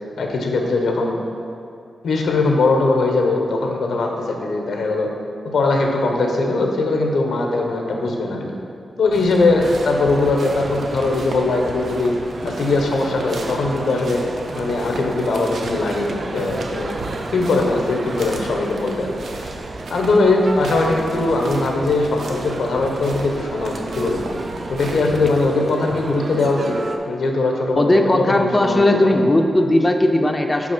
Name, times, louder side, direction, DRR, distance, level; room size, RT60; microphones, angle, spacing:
voice 1, 0.2-1.2 2.0-5.1 5.4-8.5 9.0-12.2 12.4-14.2 14.6-17.0 17.3-19.1 19.9-24.2 24.7-26.8 27.0-29.2, left 2 dB, 90° left, 2 dB, 0.9 m, -20 dB
sound 1, 9.1-25.5, right 2 dB, 75° right, 0.8 m, -35 dB
Male speech man speaking, 9.6-27.0, right 2 dB, 40° right, 0.5 m, -32 dB
voice 2, 27.7-30.7, left 1 dB, 15° left, 3 dB, 0.4 m, -17 dB
6.0 x 4.5 x 5.9 m, 2.5 s
wide cardioid pair, 155°, 0 cm